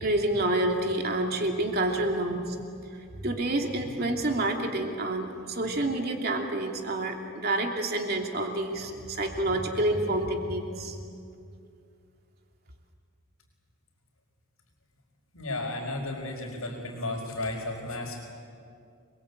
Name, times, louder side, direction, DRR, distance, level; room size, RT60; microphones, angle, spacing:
voice 1, 0.0-2.6 2.9-11.0, right 1 dB, 45° right, 2 dB, 2.8 m, -28 dB
voice 2, 15.3-18.2, left 2 dB, 85° left, -5 dB, 4.8 m, -33 dB
27.5 x 22.0 x 8.5 m, 2.4 s
head